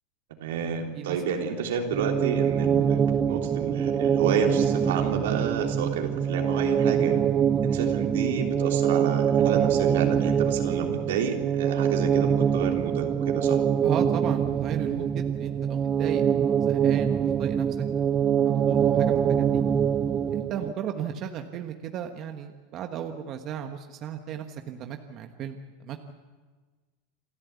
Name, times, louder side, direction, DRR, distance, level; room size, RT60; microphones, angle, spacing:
voice 1, 0.4-7.2 7.6-13.6, right 6 dB, 80° right, 2 dB, 3.3 m, -30 dB
sound 1, 1.9-20.7, right 8 dB, 25° right, 0.7 m, -24 dB
voice 2, 13.8-16.2 16.6-17.8 18.4-19.6 20.3-26.1, right 9 dB, 40° right, 5 dB, 1.3 m, -35 dB
28.0 x 13.0 x 8.3 m, 1.4 s
supercardioid pair, 120°, 0 cm